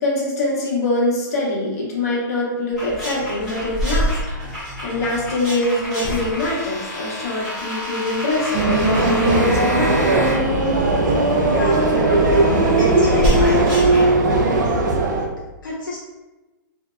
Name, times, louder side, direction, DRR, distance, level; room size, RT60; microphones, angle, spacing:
voice 1, 0.0-4.1 4.5-10.2 11.9-12.2, left 2 dB, 50° left, -5 dB, 0.8 m, -24 dB
sound 1, 2.7-3.0 3.5-5.3 6.0-6.7 11.2-11.3 11.7-11.9 12.3-12.4 12.7-12.8 13.1-13.5, equal, 25° left, 0.3 m, -25 dB
sound 2, 2.8-14.1, left 1 dB, ahead, 0.9 m, -31 dB
sound 3, 8.5-15.3, right 2 dB, 65° right, 0.4 m, -17 dB
voice 2, 11.4-11.9 12.3-12.4 12.8-13.7 15.6-16.0, left 2 dB, 80° left, -3 dB, 0.5 m, -27 dB
2.7 x 2.1 x 2.2 m, 1.1 s
hypercardioid pair, 170°, 11 cm